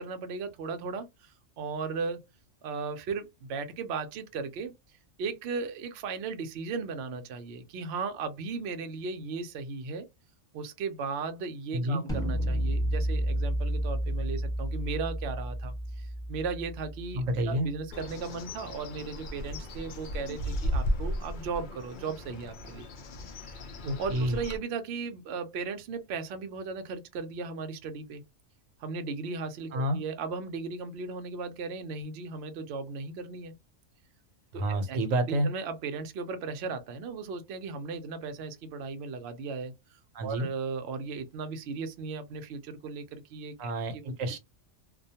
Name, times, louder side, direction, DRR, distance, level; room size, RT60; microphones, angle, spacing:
voice 1, 0.0-2.2 2.6-4.7 5.2-10.1 10.5-22.9 23.3-23.6 24.0-28.2 28.8-33.5 34.5-35.0 35.3-43.5, right 4 dB, 65° right, 0.7 m, -36 dB
sound 1, 12.1-18.1, right 1 dB, 5° left, 0.8 m, -31 dB
voice 2, 17.1-17.7 23.8-24.4 29.7-30.0 34.5-35.5 40.1-40.5 43.6-44.4, right 1 dB, 85° right, 1.1 m, -29 dB
Bird, 17.9-24.6, equal, 60° left, 0.5 m, -35 dB
2.3 x 2.2 x 2.7 m
omnidirectional pair, 1.3 m